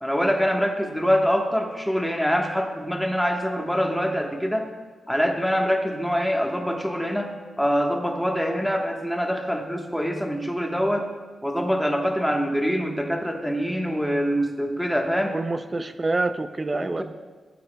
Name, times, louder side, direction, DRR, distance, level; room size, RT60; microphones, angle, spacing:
voice 1, 0.0-4.7 5.1-11.1 11.4-15.4 16.7-17.0, equal, ahead, 2 dB, 1.3 m, -24 dB
voice 2, 15.3-17.0, right 2 dB, 30° right, 11 dB, 0.5 m, -27 dB
15.0 x 9.1 x 2.3 m, 1.5 s
cardioid pair, 75°, 0 cm